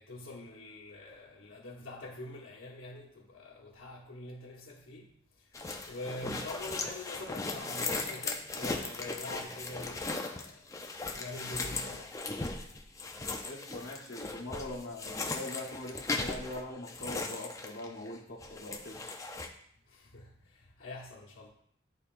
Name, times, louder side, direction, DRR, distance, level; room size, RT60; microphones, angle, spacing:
voice 1, 0.0-5.1 5.4-10.7 11.1-12.2 19.9-21.5, left 2 dB, 80° left, -7 dB, 1.0 m, -45 dB
sound 1, 5.5-18.1 18.4-19.5, left 3 dB, 15° left, 0.4 m, -38 dB
voice 2, 13.4-19.0, left 1 dB, 60° left, -6 dB, 1.1 m, -42 dB
10.5 x 4.2 x 2.5 m, 0.69 s
head